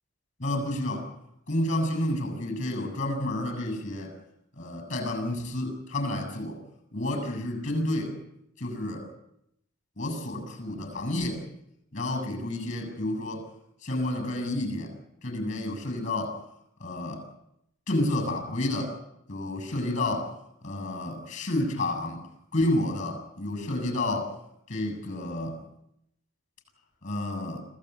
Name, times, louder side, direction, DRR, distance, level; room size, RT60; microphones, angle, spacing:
voice 1, 0.4-1.1 1.5-4.1 4.5-6.6 6.9-8.2 8.6-9.1 10.0-11.4 11.9-13.5 13.8-14.9 15.2-16.4 16.8-17.3 17.9-18.9 19.3-20.3 20.6-22.3 22.5-24.3 24.7-25.6 27.0-27.6, left 1 dB, 40° left, 8 dB, 7.2 m, -30 dB
26.5 x 16.5 x 8.2 m, 0.79 s
head